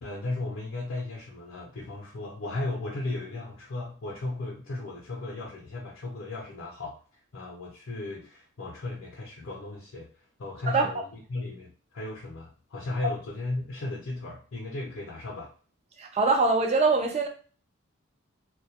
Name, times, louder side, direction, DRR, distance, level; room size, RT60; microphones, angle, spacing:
voice 1, 0.0-7.0 7.3-15.5, left 2 dB, 65° left, 0.5 m, -36 dB
voice 2, 16.0-17.3, right 3 dB, 30° right, 0.4 m, -23 dB
2.1 x 2.1 x 2.7 m
head